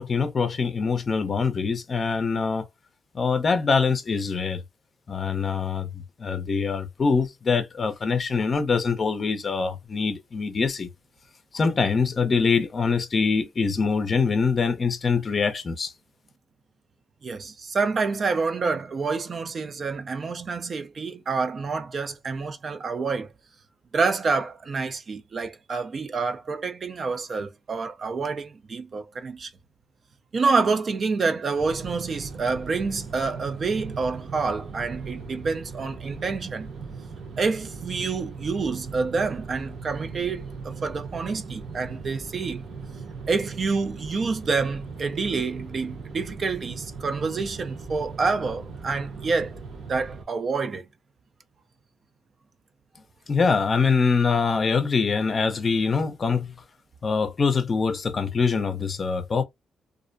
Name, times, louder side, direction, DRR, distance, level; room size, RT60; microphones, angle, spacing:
voice 1, 0.0-2.7 3.1-4.6 5.1-10.9 11.5-15.9 53.3-56.5 57.0-59.4, left 5 dB, 40° left, 0.5 m, -24 dB
voice 2, 17.2-23.3 23.9-29.5 30.3-36.7 37.4-42.6 43.3-49.6 49.9-50.9, right 4 dB, 45° right, 0.4 m, -28 dB
sound 1, 31.5-50.2, right 4 dB, 60° right, 0.8 m, -38 dB
2.4 x 2.0 x 2.5 m
cardioid pair, 90°, 0 cm